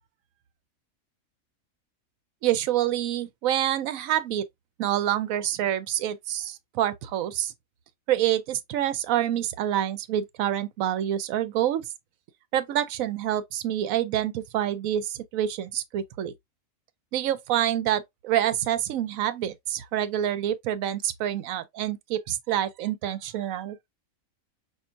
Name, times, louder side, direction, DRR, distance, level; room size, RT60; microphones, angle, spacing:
voice 1, 2.4-4.4 4.8-7.5 8.1-11.8 12.5-16.3 17.1-23.8, right 11 dB, 75° right, 1.0 m, -27 dB
5.6 x 2.5 x 2.5 m
omnidirectional pair, 1.5 m